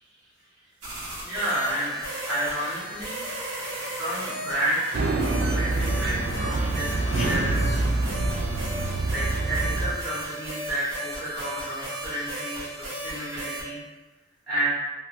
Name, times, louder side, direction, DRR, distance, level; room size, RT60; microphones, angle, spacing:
sound 1, 0.8-13.6, right 1 dB, 85° right, 0.9 m, -35 dB
voice 1, 1.2-3.2 3.8-4.9 5.4-8.0 9.1-13.8 14.5-14.7, right 1 dB, 5° right, -14 dB, 0.8 m, -31 dB
sound 2, 2.5-8.8, left 2 dB, 35° left, 0.4 m, -45 dB
sound 3, 4.9-9.9, right 2 dB, 55° right, 0.3 m, -26 dB
2.7 x 2.1 x 2.8 m, 1.2 s
head